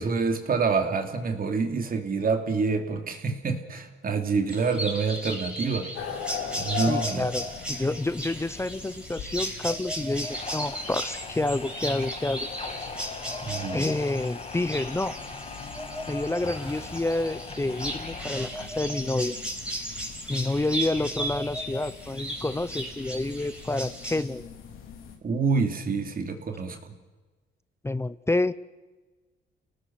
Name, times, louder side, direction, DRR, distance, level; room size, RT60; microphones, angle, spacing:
voice 1, 0.0-5.9 6.6-7.5 13.4-14.0 25.2-26.9, right 4 dB, 45° right, 5 dB, 3.1 m, -27 dB
sound 1, 4.5-24.2, right 1 dB, 5° right, 5.4 m, -36 dB
sound 2, 5.9-25.2, left 7 dB, 85° left, 3.7 m, -41 dB
voice 2, 6.9-12.5 12.7-12.8 13.7-15.2 16.1-19.4 20.3-24.4 27.8-28.5, left 2 dB, 15° left, 16 dB, 0.7 m, -29 dB
sound 3, 10.2-19.1, left 4 dB, 30° left, 2.2 m, -41 dB
29.5 x 18.5 x 6.1 m, 1.2 s
cardioid pair, 90°, 20 cm